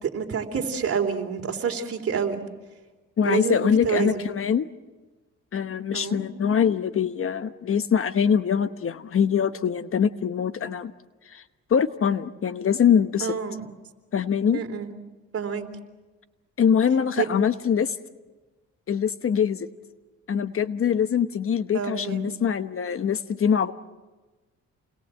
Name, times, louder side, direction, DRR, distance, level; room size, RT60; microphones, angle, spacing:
voice 1, 0.0-2.4 3.2-4.3 5.9-6.2 13.2-13.6 14.5-14.9 15.3-15.7 17.2-17.3 21.7-22.4, right 6 dB, 50° right, 4 dB, 3.6 m, -28 dB
voice 2, 3.2-4.7 5.5-10.9 11.3-11.4 11.7-13.3 14.1-14.6 16.6-18.0 18.9-19.7 20.3-23.7, left 7 dB, 45° left, 11 dB, 1.0 m, -23 dB
29.0 x 21.5 x 7.7 m, 1.2 s
cardioid pair, 90°, 30 cm